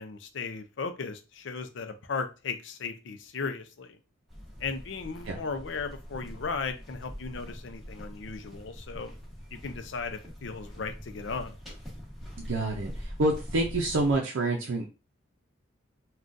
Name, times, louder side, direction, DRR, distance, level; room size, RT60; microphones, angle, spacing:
voice 1, 0.0-4.0 4.6-9.1 9.5-11.6, left 4 dB, 65° left, 8 dB, 0.5 m, -36 dB
sound 1, 4.3-14.2, equal, ahead, 1.0 m, -43 dB
voice 2, 12.4-14.9, right 2 dB, 75° right, 0 dB, 0.5 m, -28 dB
3.7 x 2.3 x 2.5 m, 0.30 s
head